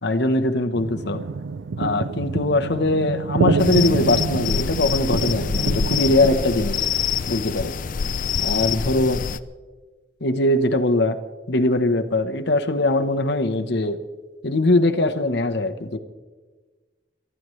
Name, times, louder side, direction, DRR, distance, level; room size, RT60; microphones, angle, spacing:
voice 1, 0.0-1.2 1.8-6.9 7.3-7.7 8.4-9.2 10.2-11.2 11.5-14.0 14.4-16.0, left 2 dB, 65° left, 7 dB, 1.0 m, -21 dB
sound 1, 0.7-6.4, right 4 dB, 85° right, 0.5 m, -26 dB
sound 2, 3.6-9.4, left 6 dB, 45° left, 0.5 m, -26 dB
28.0 x 13.5 x 3.2 m, 1.3 s
head